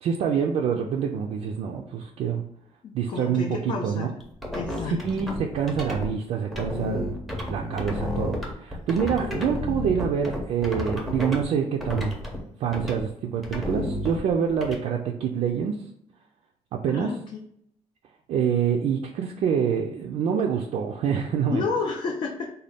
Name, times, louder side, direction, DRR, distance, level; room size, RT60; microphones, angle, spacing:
voice 1, 0.0-2.4 2.9-4.1 4.8-7.1 7.5-12.1 12.6-15.8 16.8-17.1 18.3-21.7, right 7 dB, 60° right, 1 dB, 0.4 m, -26 dB
voice 2, 2.8-4.1 4.5-5.0 16.9-17.4 21.5-22.5, left 4 dB, 45° left, 1 dB, 0.4 m, -30 dB
sound 1, 4.2-6.1 6.5-11.4 11.8-12.4 12.7-13.0 13.4-14.7, equal, ahead, 0.6 m, -31 dB
3.9 x 2.3 x 3.4 m, 0.72 s
cardioid pair, 170°, 12 cm